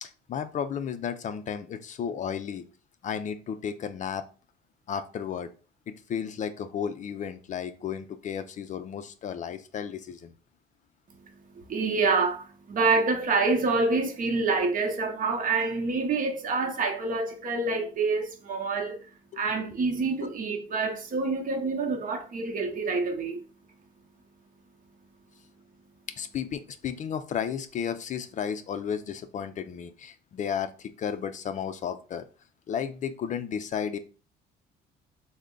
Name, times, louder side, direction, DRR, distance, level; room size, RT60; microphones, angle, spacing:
voice 1, 0.0-2.7 3.0-4.2 4.9-5.5 5.9-10.3 26.2-32.2 32.7-34.0, left 8 dB, 40° left, 0.4 m, -33 dB
voice 2, 11.1-23.4, right 3 dB, 45° right, 0.8 m, -27 dB
3.3 x 2.1 x 3.8 m
cardioid pair, 100°, 19 cm